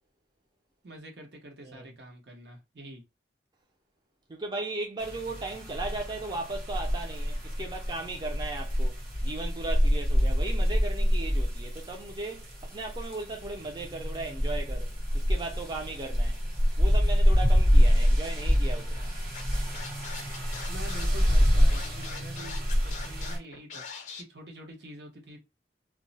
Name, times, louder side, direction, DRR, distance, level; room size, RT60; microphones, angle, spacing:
voice 1, 0.8-3.0 20.7-25.4, right 1 dB, 70° right, 0.8 m, -46 dB
voice 2, 1.6-1.9 4.3-16.4 16.8-19.1, right 2 dB, 25° right, 0.5 m, -37 dB
sound 1, 5.0-23.4, equal, 50° right, 1.1 m, -26 dB
Scratching (performance technique), 19.3-24.2, left 5 dB, 45° left, 0.5 m, -42 dB
2.3 x 2.0 x 3.9 m
head